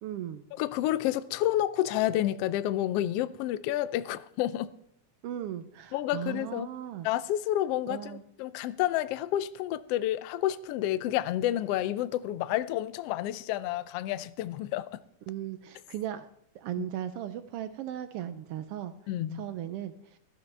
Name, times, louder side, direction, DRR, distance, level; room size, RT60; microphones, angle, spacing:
voice 1, 0.0-0.4 5.2-7.1 7.9-8.2 15.3-16.3 16.5-18.9 19.3-20.2, right 11 dB, 85° right, 1.3 m, -37 dB
voice 2, 0.6-4.7 5.9-6.7 7.0-15.0 19.1-19.4, left 13 dB, 85° left, 1.3 m, -30 dB
16.5 x 13.0 x 3.3 m
omnidirectional pair, 3.4 m